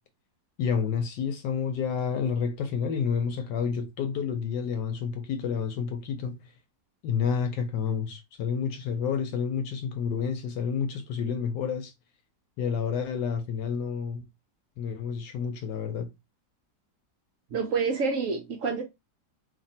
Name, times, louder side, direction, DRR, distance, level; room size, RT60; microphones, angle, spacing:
voice 1, 0.6-6.4 7.0-11.9 12.6-14.2 14.8-16.1, left 6 dB, 75° left, 1.2 m, -29 dB
voice 2, 17.5-18.8, right 5 dB, 70° right, 0.8 m, -28 dB
3.1 x 2.6 x 4.0 m
omnidirectional pair, 2.0 m